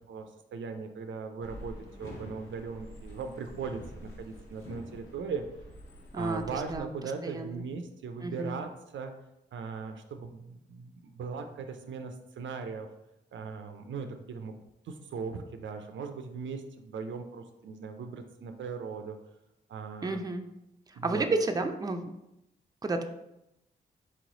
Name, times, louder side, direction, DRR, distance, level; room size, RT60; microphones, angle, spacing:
voice 1, 0.1-5.5 6.1-9.1 9.5-12.9 13.3-14.6 14.8-19.2 19.7-20.2 21.0-21.3, right 5 dB, 65° right, 6 dB, 0.5 m, -39 dB
sound 1, 1.4-6.8, equal, 70° left, 1.3 m, -47 dB
voice 2, 6.1-6.9 7.2-7.6 8.2-8.5 20.0-20.4 20.9-22.1 22.8-23.0, right 2 dB, 20° right, 5 dB, 0.5 m, -31 dB
4.5 x 3.0 x 3.9 m, 0.87 s
supercardioid pair, 45°, 21 cm